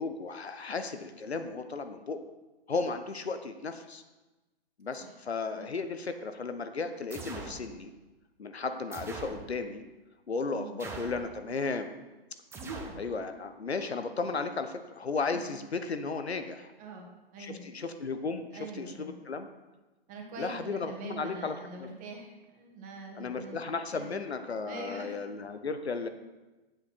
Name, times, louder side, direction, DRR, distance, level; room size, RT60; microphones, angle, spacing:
voice 1, 0.0-2.2 2.7-4.0 4.8-7.9 8.4-9.8 10.3-11.9 13.0-16.7 17.4-18.5 18.7-19.5 20.4-21.9 23.2-26.1, left 4 dB, 90° left, 9 dB, 0.9 m, -35 dB
sound 1, 7.1-7.6 8.9-9.5 10.8-11.3 12.5-13.0, right 3 dB, 10° right, 0.8 m, -42 dB
voice 2, 12.5-13.3 15.3-15.5 16.8-17.7 18.5-19.1 20.1-23.6 23.9-24.1 24.7-25.1, right 3 dB, 25° right, 1 dB, 1.6 m, -44 dB
8.3 x 7.9 x 4.3 m, 1.1 s
hypercardioid pair, 125°, 31 cm